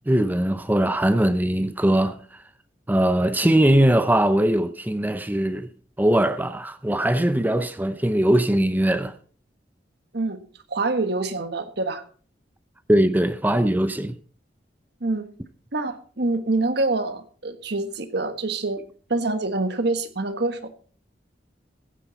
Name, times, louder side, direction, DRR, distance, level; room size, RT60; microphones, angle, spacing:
voice 1, 0.1-2.1 2.9-5.7 6.0-9.1 12.9-14.1, right 1 dB, 10° right, 0.6 m, -20 dB
voice 2, 10.7-12.0 15.0-15.3 15.7-18.8 19.1-20.7, right 2 dB, 65° right, 1.5 m, -26 dB
15.0 x 10.0 x 4.0 m
head